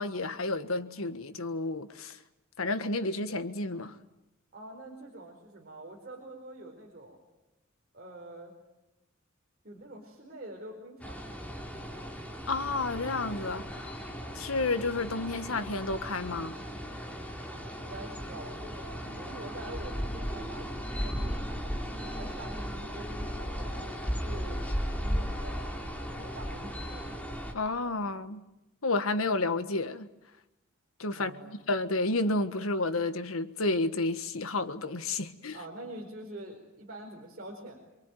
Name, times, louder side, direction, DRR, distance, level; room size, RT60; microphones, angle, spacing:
voice 1, 0.0-2.2 2.6-3.9 12.5-13.9 14.3-16.6 27.5-28.4 28.8-30.1 31.0-35.6, left 2 dB, 85° left, 1.6 m, -31 dB
voice 2, 4.5-7.2 7.9-8.5 9.6-11.2 17.5-21.4 21.8-25.8 26.1-27.1 31.1-31.6 35.5-37.9, right 1 dB, 45° right, 4.7 m, -46 dB
sound 1, 11.0-27.5, equal, 5° left, 3.7 m, -36 dB
26.5 x 24.0 x 9.3 m
head